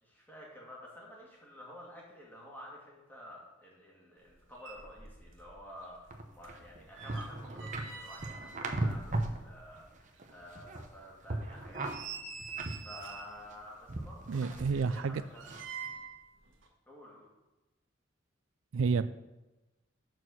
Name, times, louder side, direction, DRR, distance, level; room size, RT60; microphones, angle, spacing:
voice 1, 0.0-12.5 12.8-15.4 16.9-17.3, equal, 10° left, -4 dB, 2.2 m, -51 dB
sound 1, 4.3-4.4 4.6-5.5 5.8-9.8 10.1-10.2 10.8-10.9 11.4-13.4 14.2-16.2 16.5-16.7, right 5 dB, 70° right, 1.5 m, -46 dB
sound 2, 6.1-9.4 9.7-10.9 11.2-13.5 13.9-14.9 15.4-15.6, right 2 dB, 40° right, 0.8 m, -38 dB
voice 2, 14.3-15.2 18.7-19.1, right 5 dB, 85° right, 14 dB, 0.4 m, -30 dB
7.0 x 6.2 x 6.2 m, 1.1 s
head